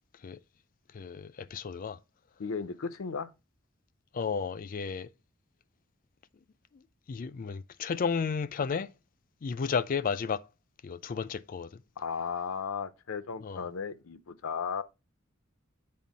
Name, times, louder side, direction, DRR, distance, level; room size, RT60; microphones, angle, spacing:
voice 1, 0.9-2.0 4.1-5.1 6.7-6.8 7.1-8.9 9.4-10.4 10.8-11.8 13.4-13.6, left 5 dB, 40° left, 0.4 m, -33 dB
voice 2, 2.4-3.3 12.0-14.8, left 6 dB, 85° left, 0.6 m, -35 dB
7.6 x 4.4 x 4.1 m
head